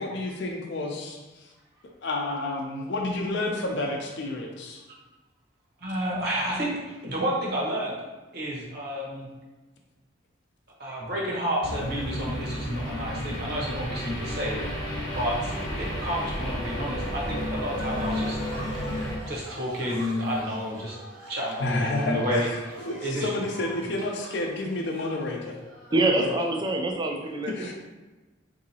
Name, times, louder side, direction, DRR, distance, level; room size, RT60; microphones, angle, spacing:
voice 1, 0.0-1.5 2.0-4.8 21.6-22.6 22.8-25.6 25.9-26.3 27.5-27.7, left 2 dB, 60° left, 1 dB, 0.5 m, -30 dB
voice 2, 5.8-6.8 7.0-7.9 8.3-9.3 10.8-14.6 15.1-18.4 19.3-21.0 21.3-22.7 23.0-23.3, equal, 50° right, -4 dB, 0.9 m, -30 dB
sound 1, 11.6-19.2, equal, 20° left, 0.7 m, -32 dB
sound 2, 17.6-26.4, right 1 dB, 90° right, 0.9 m, -44 dB
voice 3, 25.9-27.7, right 2 dB, 20° right, 1 dB, 0.3 m, -25 dB
3.8 x 2.7 x 2.8 m, 1.2 s
head